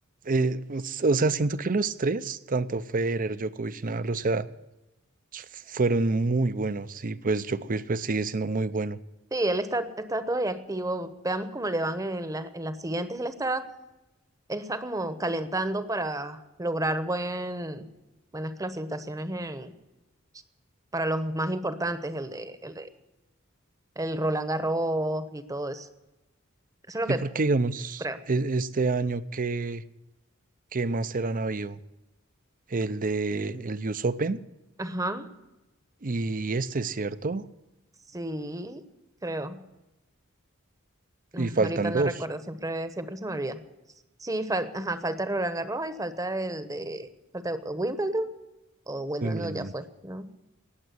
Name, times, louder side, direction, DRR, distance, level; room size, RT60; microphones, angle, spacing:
voice 1, 0.2-4.5 5.3-9.0 27.1-29.8 30.7-31.8 32.7-34.4 36.0-37.4 41.3-42.1 49.2-49.7, right 3 dB, 40° right, 14 dB, 0.6 m, -27 dB
voice 2, 9.3-13.7 14.5-17.9 18.3-19.7 20.9-22.9 24.0-25.9 26.9-27.2 28.0-28.2 34.8-35.3 38.1-38.8 39.2-39.6 41.3-43.6 44.2-47.1 47.3-48.3 48.9-50.3, right 1 dB, 15° right, 11 dB, 1.0 m, -30 dB
18.5 x 7.5 x 9.7 m, 1.0 s
head